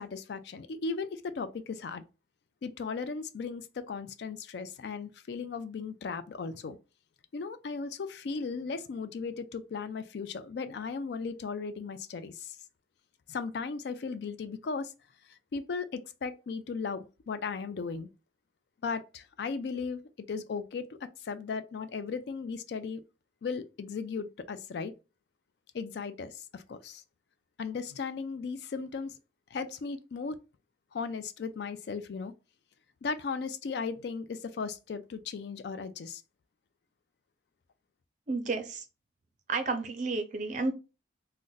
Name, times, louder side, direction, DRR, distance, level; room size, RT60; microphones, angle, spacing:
voice 1, 0.0-2.0 2.6-6.8 7.3-12.6 13.3-14.9 15.3-18.1 18.8-20.0 20.3-23.0 23.4-24.9 25.7-27.0 27.6-29.2 29.5-30.4 30.9-32.3 33.0-36.2, left 5 dB, 65° left, 0.3 m, -36 dB
voice 2, 38.3-38.9 39.5-40.7, right 3 dB, 40° right, 0.5 m, -31 dB
2.5 x 2.1 x 3.8 m
head